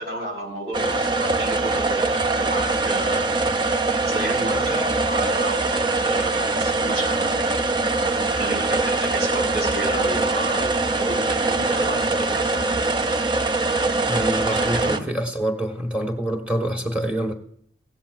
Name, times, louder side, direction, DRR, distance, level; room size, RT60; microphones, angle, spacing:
voice 1, 0.0-3.4 4.1-7.5 8.4-12.8 14.4-15.1, right 1 dB, 65° right, -2 dB, 4.8 m, -31 dB
sound 1, 0.7-15.0, right 3 dB, 25° right, 0.5 m, -22 dB
voice 2, 14.1-17.3, right 1 dB, 5° right, 2 dB, 1.3 m, -26 dB
16.0 x 13.0 x 2.5 m, 0.64 s
head